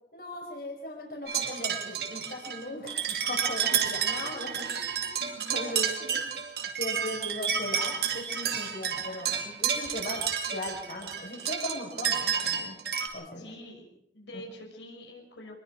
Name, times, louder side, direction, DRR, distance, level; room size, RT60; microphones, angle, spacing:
voice 1, 0.1-5.0 5.2-5.9 6.8-12.8 13.1-13.5 14.3-14.4, left 1 dB, 55° left, 0 dB, 5.3 m, -38 dB
sound 1, 1.3-13.1, right 7 dB, 60° right, 2.4 m, -30 dB
voice 2, 4.2-4.5 5.1-5.2 6.0-6.3 13.4-13.9 14.1-15.5, left 1 dB, 85° left, 1 dB, 5.9 m, -46 dB
25.5 x 21.0 x 4.8 m, 0.79 s
head